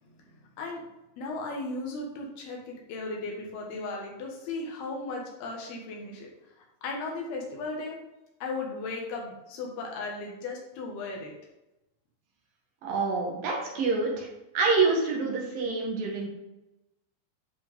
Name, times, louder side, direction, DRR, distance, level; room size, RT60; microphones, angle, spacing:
voice 1, 0.0-0.8 1.2-6.3 6.8-8.0 8.4-11.3, left 3 dB, 85° left, 0 dB, 3.5 m, -36 dB
voice 2, 12.8-14.3 14.5-16.3, right 4 dB, 65° right, -1 dB, 3.2 m, -26 dB
10.5 x 4.9 x 3.6 m, 0.95 s
omnidirectional pair, 4.4 m